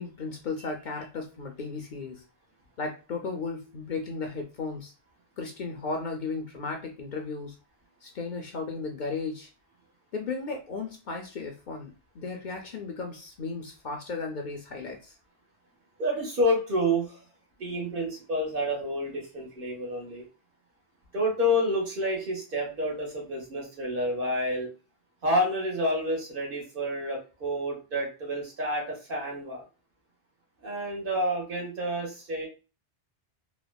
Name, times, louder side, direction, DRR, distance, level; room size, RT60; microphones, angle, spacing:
voice 1, 0.0-2.2 2.8-4.9 5.4-7.5 8.0-9.5 10.1-15.2, left 4 dB, 55° left, 2 dB, 0.6 m, -35 dB
voice 2, 16.0-17.2 17.6-20.2 21.1-24.7 25.2-29.6 30.6-32.5, equal, 60° right, -2 dB, 1.2 m, -29 dB
3.0 x 2.0 x 2.2 m, 0.33 s
omnidirectional pair, 1.0 m